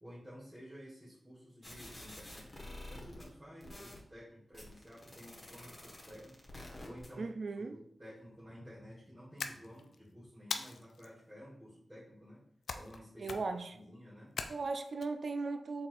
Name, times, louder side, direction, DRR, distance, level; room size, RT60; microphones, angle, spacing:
voice 1, 0.0-7.3 7.6-12.5 12.7-14.4, equal, 20° right, 1.6 m, -53 dB
sound 1, 1.6-3.3 3.6-4.0 4.5-7.1, left 1 dB, 20° left, 1.3 m, -49 dB
voice 2, 7.2-7.8 13.2-13.7 14.5-15.9, right 3 dB, 65° right, 0.3 m, -37 dB
sound 2, 9.4-10.0 10.5-11.1 12.7-13.0 13.2-13.7 14.4-15.1, left 5 dB, 85° left, 0.3 m, -40 dB
4.2 x 4.1 x 2.5 m
cardioid pair, 50°, 0 cm